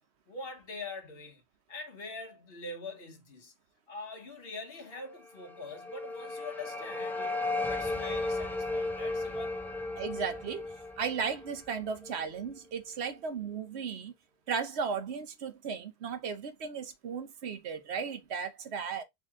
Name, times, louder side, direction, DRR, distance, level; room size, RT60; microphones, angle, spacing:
voice 1, 0.3-1.4 1.7-3.5 3.9-9.6, left 3 dB, 65° left, 1.4 m, -44 dB
sound 1, 5.4-12.4, left 2 dB, ahead, 0.6 m, -35 dB
voice 2, 10.0-10.7 11.0-14.1 14.5-19.0, right 6 dB, 80° right, 1.1 m, -35 dB
4.4 x 3.0 x 3.6 m
omnidirectional pair, 1.1 m